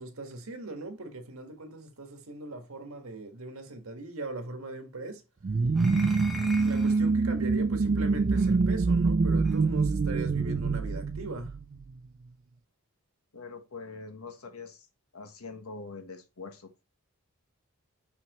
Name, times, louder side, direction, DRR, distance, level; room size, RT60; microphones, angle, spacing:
voice 1, 0.0-5.2 6.6-11.6, right 2 dB, 80° right, 1.6 m, -40 dB
sound 1, 5.4-11.9, right 4 dB, 40° right, 0.3 m, -25 dB
sound 2, 5.7-7.1 8.4-8.5 9.4-9.6, left 2 dB, ahead, 0.9 m, -43 dB
voice 2, 13.3-14.9 15.1-16.8, left 4 dB, 85° left, 1.3 m, -43 dB
6.0 x 5.8 x 3.0 m
head